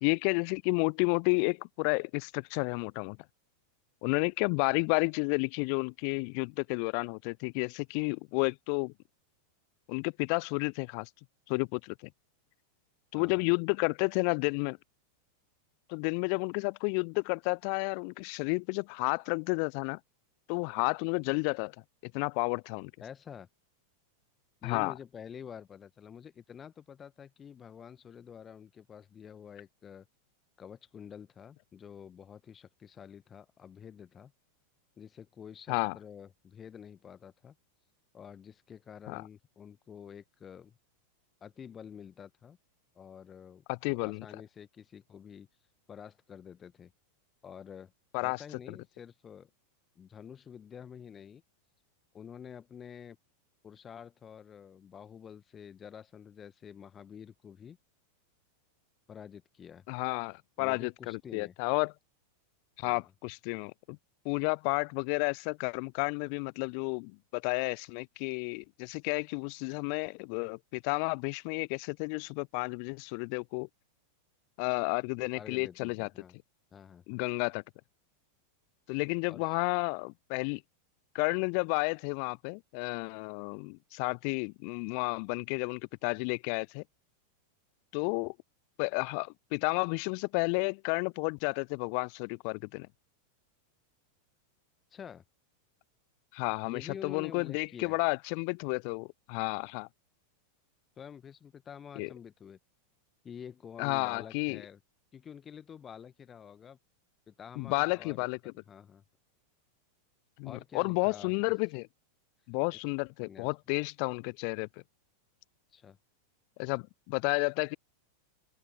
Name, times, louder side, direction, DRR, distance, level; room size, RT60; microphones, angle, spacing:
voice 1, 0.0-3.2 4.0-8.9 9.9-11.1 11.5-11.9 13.1-14.8 15.9-20.0 20.5-21.7 22.1-22.9 24.6-24.9 35.7-36.0 39.1-39.2 43.7-44.3 48.1-48.4 48.7-48.8 59.9-61.9 62.8-64.0 64.2-73.7 74.6-76.1 77.1-77.6 78.9-80.6 81.1-86.8 87.9-88.3 88.8-92.9 96.3-99.9 102.0-102.1 103.8-104.6 107.6-108.4 110.4-111.9 112.5-114.7 116.6-117.8, left 40 dB or more, 45° left, 0.4 m, -31 dB
voice 2, 23.0-23.5 24.6-30.1 30.6-34.3 35.0-37.5 38.1-40.8 41.4-42.6 42.9-45.5 45.9-46.9 47.4-47.9 48.2-49.5 49.9-51.4 52.1-53.2 53.6-57.8 59.1-59.8 60.6-61.5 62.8-63.1 75.3-76.4 76.7-77.2 79.3-79.6 94.9-95.2 96.6-98.0 101.0-102.6 103.2-104.8 105.1-106.8 107.3-109.0 110.4-111.3 112.7-112.8 113.2-113.5 115.7-116.0, left 8 dB, 20° left, 1.3 m, -48 dB
open air
figure-of-eight pair, 90°, 0 cm